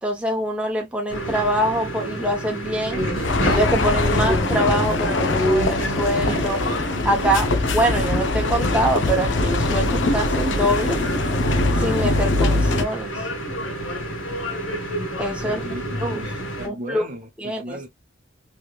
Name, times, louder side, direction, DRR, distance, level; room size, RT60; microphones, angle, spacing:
voice 1, 0.0-3.1 3.5-6.6 7.0-11.0 11.8-13.2 15.2-15.6 16.0-16.2 16.6-17.1 17.4-17.9, right 1 dB, 5° right, 0.8 m, -24 dB
sound 1, 1.1-16.7, right 1 dB, 90° left, 1.5 m, -29 dB
sound 2, 3.2-12.9, left 2 dB, 70° left, 0.6 m, -22 dB
voice 2, 15.4-17.9, right 1 dB, 40° right, 0.7 m, -36 dB
3.3 x 3.0 x 2.3 m
head